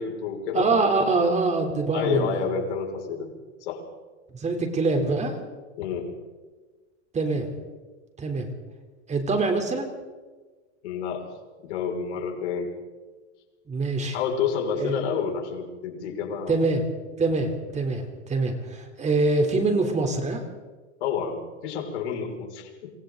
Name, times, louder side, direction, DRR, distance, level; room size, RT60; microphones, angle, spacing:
voice 1, 0.0-0.7 1.9-3.3 3.6-3.8 5.8-6.1 10.8-11.3 11.6-12.7 14.1-16.6 21.0-22.9, left 6 dB, 70° left, 2 dB, 6.1 m, -29 dB
voice 2, 0.5-2.5 4.3-5.4 7.1-7.5 8.2-8.5 9.1-9.9 13.7-14.2 14.8-15.0 16.5-16.8 17.2-20.4, right 3 dB, 20° right, 4 dB, 3.6 m, -24 dB
28.0 x 24.0 x 4.0 m, 1.3 s
hypercardioid pair, 120°, 35 cm